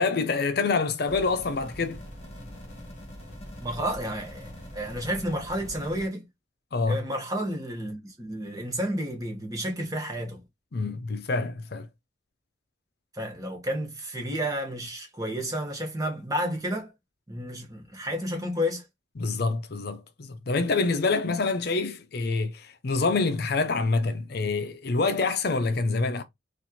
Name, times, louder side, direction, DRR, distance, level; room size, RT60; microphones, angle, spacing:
voice 1, 0.0-2.0 6.7-7.0 10.7-11.9 19.2-26.2, left 3 dB, 55° left, 0.5 m, -26 dB
sound 1, 1.1-6.1, equal, 35° left, 1.6 m, -43 dB
voice 2, 3.6-6.3 6.9-10.4 13.1-16.9 17.3-18.8, equal, 20° right, 1.2 m, -31 dB
4.1 x 2.5 x 2.9 m
head